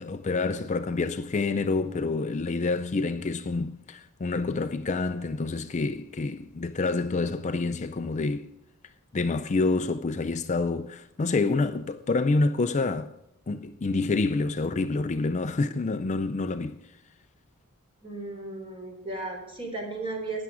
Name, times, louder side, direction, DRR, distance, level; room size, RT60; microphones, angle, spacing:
voice 1, 0.0-8.5 9.1-13.1 13.5-16.8, left 3 dB, 35° left, 0.4 m, -27 dB
voice 2, 18.0-20.4, right 2 dB, 25° right, 3.7 m, -35 dB
13.0 x 9.7 x 4.9 m
head